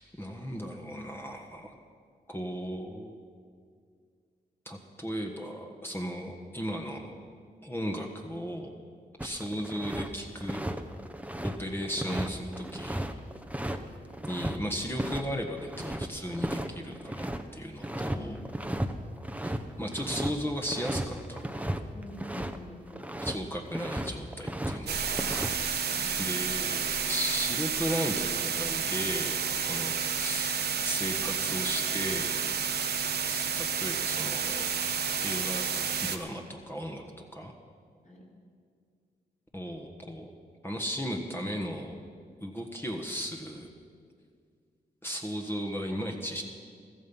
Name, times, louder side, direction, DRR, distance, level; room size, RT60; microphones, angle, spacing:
voice 1, 0.2-1.7 2.3-3.2 4.6-7.1 7.6-8.8 9.2-10.6 11.4-13.1 14.2-18.5 19.4-21.5 23.2-25.2 26.2-32.4 33.3-34.7 35.2-35.6 36.0-37.5 39.5-40.3 40.6-42.0 42.4-43.7 45.0-46.4, equal, 15° left, 1 dB, 1.4 m, -36 dB
sound 1, 9.2-10.1 10.4-14.6 15.0-15.2 15.5-17.4 17.8-18.2 18.4-18.9 19.2-22.6 22.9-23.4 23.7-24.8 25.0-25.5, right 1 dB, 10° right, 1.0 m, -34 dB
voice 2, 17.9-18.5 21.9-23.1 25.9-26.2 38.0-38.3, left 1 dB, 45° left, -4 dB, 4.3 m, -46 dB
sound 2, 24.9-36.2, right 6 dB, 70° right, 1.1 m, -30 dB
15.0 x 13.0 x 5.6 m, 2.1 s
cardioid pair, 60°, 18 cm